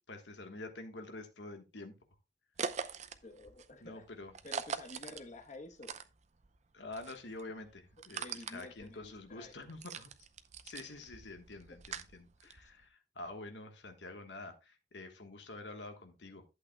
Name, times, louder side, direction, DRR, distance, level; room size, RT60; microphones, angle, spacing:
voice 1, 0.1-1.9 3.8-4.3 6.7-10.1 10.6-16.4, left 2 dB, 85° left, 6 dB, 1.3 m, -47 dB
sound 1, 2.6-6.6 6.8-12.8, right 6 dB, 40° right, 0.6 m, -43 dB
voice 2, 3.2-4.0 4.4-5.9 8.1-9.5 11.7-11.8 12.6-12.7, left 2 dB, 45° left, 5 dB, 1.1 m, -50 dB
11.5 x 8.3 x 2.2 m, 0.28 s
head